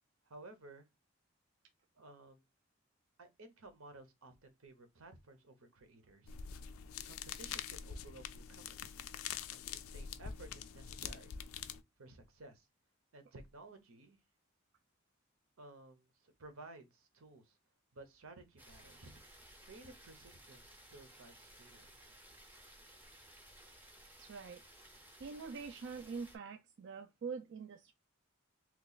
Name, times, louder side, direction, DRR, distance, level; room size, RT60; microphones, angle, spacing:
voice 1, 0.2-0.9 1.9-2.4 3.2-6.4 7.0-8.9 9.5-11.4 12.0-12.7 13.1-14.2 15.6-17.6 17.9-19.2 19.6-22.0, right 2 dB, 85° right, 0.8 m, -56 dB
sound 1, 6.3-11.8, left 8 dB, 85° left, 0.4 m, -45 dB
sound 2, 18.6-26.4, right 1 dB, 10° right, 0.6 m, -58 dB
voice 2, 24.2-24.6 25.2-27.9, right 5 dB, 55° right, 0.3 m, -45 dB
3.0 x 2.3 x 3.9 m
head